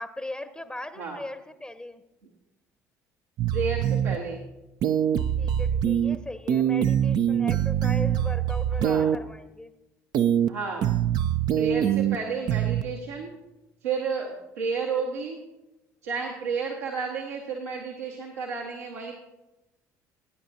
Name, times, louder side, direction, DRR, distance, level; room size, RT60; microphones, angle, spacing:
voice 1, 0.0-2.0 5.4-9.7 16.1-16.5, left 1 dB, 10° left, 11 dB, 0.8 m, -38 dB
sound 1, 3.4-4.1 4.8-6.1 6.5-9.1 10.1-10.5 10.8-12.1 12.5-12.8, right 9 dB, 55° right, 0.6 m, -23 dB
voice 2, 3.5-4.4 8.8-9.1 10.5-10.8 11.6-13.3 13.8-15.4 16.0-19.1, right 5 dB, 80° right, -3 dB, 1.6 m, -31 dB
20.5 x 9.7 x 2.8 m, 0.97 s
figure-of-eight pair, 55°, 8 cm